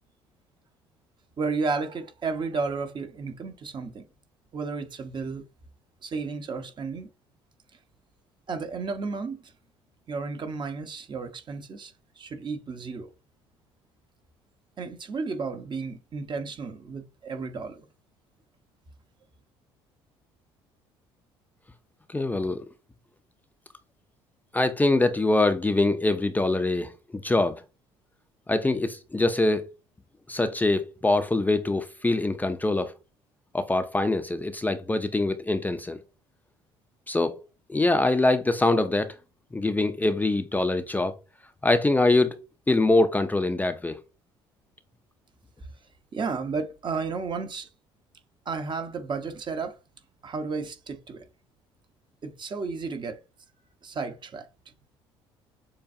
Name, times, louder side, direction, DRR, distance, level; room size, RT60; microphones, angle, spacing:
voice 1, 1.4-4.0 4.5-5.4 6.0-7.1 8.5-9.5 10.1-13.1 14.8-17.8 46.1-47.7 48.5-49.8 50.2-51.2 52.2-53.2 53.8-54.5, right 4 dB, 40° right, 1.0 m, -33 dB
voice 2, 22.1-22.6 24.5-27.6 28.5-29.6 30.3-32.9 33.5-36.0 37.1-37.4 37.7-39.1 39.5-41.2 41.6-42.4 42.7-44.0, left 2 dB, 15° left, 0.5 m, -24 dB
6.9 x 2.4 x 2.7 m
hypercardioid pair, 65°, 12 cm